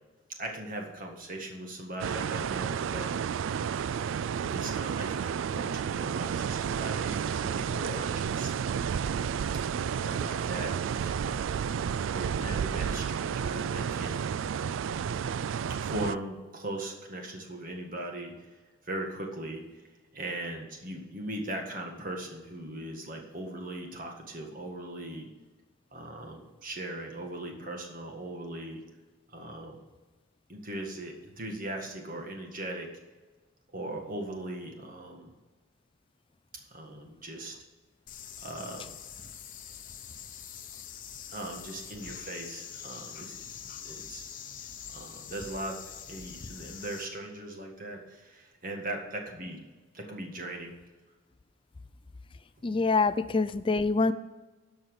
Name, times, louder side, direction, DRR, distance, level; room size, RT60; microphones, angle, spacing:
voice 1, 0.4-3.3 4.5-8.5 9.8-11.7 12.1-14.3 15.8-19.9 20.1-25.3 25.9-28.8 29.3-29.8 30.5-32.9 33.7-35.3 36.7-37.6 38.4-38.9 41.3-43.4 43.8-49.6 49.9-50.7 52.6-52.7, right 1 dB, 40° right, 2 dB, 1.7 m, -39 dB
sound 1, 2.0-16.2, right 7 dB, 65° right, 0.3 m, -31 dB
sound 2, 38.1-47.1, left 8 dB, 40° left, 0.9 m, -44 dB
voice 2, 52.6-54.1, left 3 dB, 25° left, 13 dB, 0.4 m, -25 dB
12.0 x 5.9 x 6.5 m, 1.2 s
head